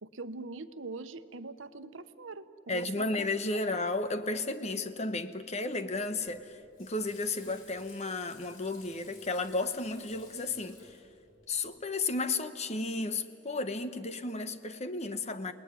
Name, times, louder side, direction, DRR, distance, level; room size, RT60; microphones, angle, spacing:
voice 1, 0.0-3.3, right 3 dB, 85° right, 11 dB, 1.0 m, -42 dB
voice 2, 2.7-11.0 11.5-15.5, left 3 dB, 35° left, 10 dB, 1.1 m, -33 dB
Water / Sink (filling or washing), 6.1-11.6, left 4 dB, 90° left, 4.5 m, -56 dB
29.0 x 19.0 x 9.7 m, 2.7 s
head